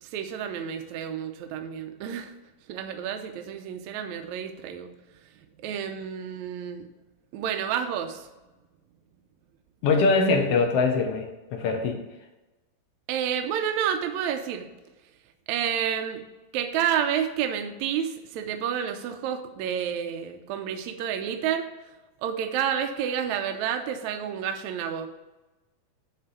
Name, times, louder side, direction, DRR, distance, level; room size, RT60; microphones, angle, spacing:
voice 1, 0.0-2.3 2.7-4.9 5.6-6.9 7.3-8.3 13.1-14.7 15.5-16.2 16.5-21.7 22.2-25.1, right 8 dB, 75° right, 6 dB, 1.8 m, -29 dB
voice 2, 9.8-12.0, left 3 dB, 65° left, 2 dB, 1.5 m, -23 dB
9.2 x 3.8 x 6.9 m, 1.1 s
omnidirectional pair, 4.0 m